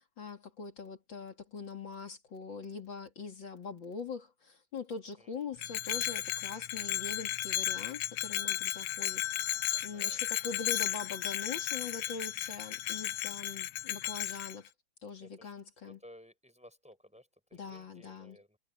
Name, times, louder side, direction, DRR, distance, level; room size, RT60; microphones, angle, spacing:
voice 1, 0.0-9.5 9.8-14.7 15.0-16.0 17.5-18.4, left 5 dB, 65° left, 3.1 m, -43 dB
Bell, 5.6-14.6, left 13 dB, 85° left, 1.6 m, -34 dB
voice 2, 9.7-10.2 15.2-15.5 15.8-18.6, equal, 5° right, 4.8 m, -57 dB
omnidirectional pair, 2.3 m